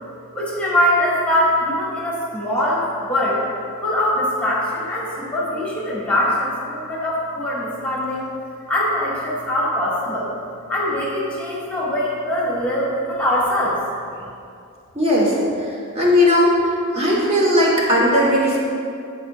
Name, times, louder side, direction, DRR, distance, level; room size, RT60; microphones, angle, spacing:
voice 1, 0.3-3.4 3.8-8.3 8.7-10.3 10.7-13.8, left 1 dB, 5° left, -6 dB, 1.3 m, -22 dB
voice 2, 14.9-16.6 16.9-18.6, left 1 dB, 30° right, -4 dB, 1.3 m, -17 dB
10.0 x 4.8 x 2.5 m, 2.5 s
head